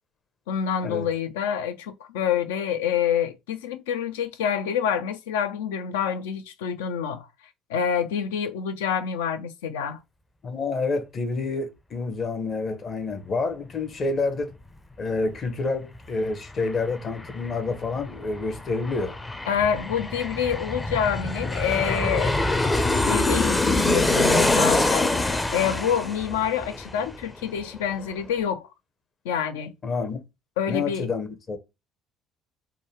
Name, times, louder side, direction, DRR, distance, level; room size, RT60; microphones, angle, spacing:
voice 1, 0.5-7.3 7.7-10.0 19.5-22.4 22.9-28.7 29.2-29.7 30.6-31.1, left 8 dB, 75° left, 0.4 m, -27 dB
voice 2, 10.4-14.5 15.0-19.2 29.8-30.2 30.7-31.6, left 3 dB, 40° left, 0.8 m, -28 dB
Aircraft, 15.9-16.0 16.3-27.6 27.9-28.0, left 2 dB, 20° left, 0.5 m, -25 dB
3.7 x 2.2 x 3.1 m
figure-of-eight pair, 55°, 0 cm